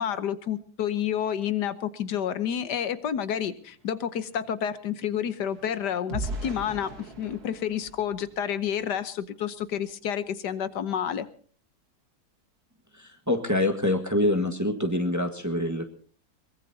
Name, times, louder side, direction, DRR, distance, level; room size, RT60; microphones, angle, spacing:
voice 1, 0.0-11.3, left 9 dB, 75° left, 13 dB, 1.5 m, -29 dB
sound 1, 3.1-3.2 3.5-9.0 9.5-9.7 10.1-10.3, right 1 dB, 65° right, 2.4 m, -40 dB
voice 2, 12.9-15.9, left 1 dB, 10° right, 5 dB, 1.4 m, -26 dB
22.5 x 20.5 x 2.8 m, 0.42 s
omnidirectional pair, 1.8 m